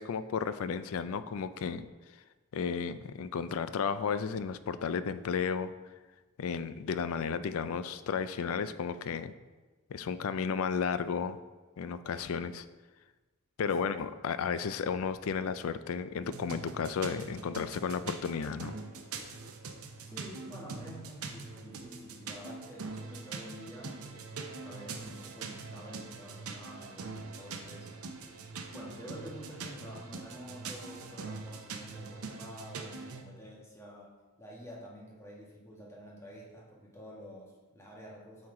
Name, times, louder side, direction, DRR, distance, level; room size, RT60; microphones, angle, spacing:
voice 1, 0.0-1.9 2.5-5.7 6.4-9.3 9.9-11.4 11.8-12.7 13.6-18.7, left 6 dB, 70° left, 13 dB, 0.4 m, -33 dB
voice 2, 13.6-13.9 20.1-24.3 24.6-27.9 28.7-38.5, equal, 15° left, -3 dB, 1.3 m, -48 dB
sound 1, 16.2-33.2, right 4 dB, 75° right, 0.7 m, -43 dB
8.4 x 4.5 x 3.7 m, 1.2 s
head